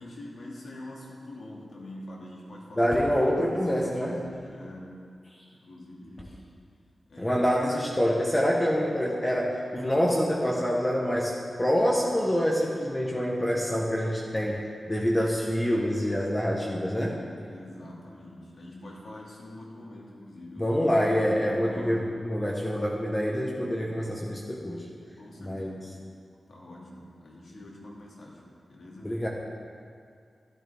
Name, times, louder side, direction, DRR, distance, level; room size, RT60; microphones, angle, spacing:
voice 1, 0.0-3.0 3.3-5.1 5.5-6.4 7.1-7.4 17.4-22.1 25.2-26.0 26.5-28.4 28.7-29.2, left 1 dB, 70° left, -3 dB, 2.2 m, -45 dB
voice 2, 2.8-4.3 7.2-11.3 11.6-17.3 20.6-24.9 25.4-25.8 29.0-29.3, equal, 15° left, -3 dB, 1.1 m, -26 dB
12.5 x 11.5 x 3.5 m, 2.2 s
wide cardioid pair, 110°, 0 cm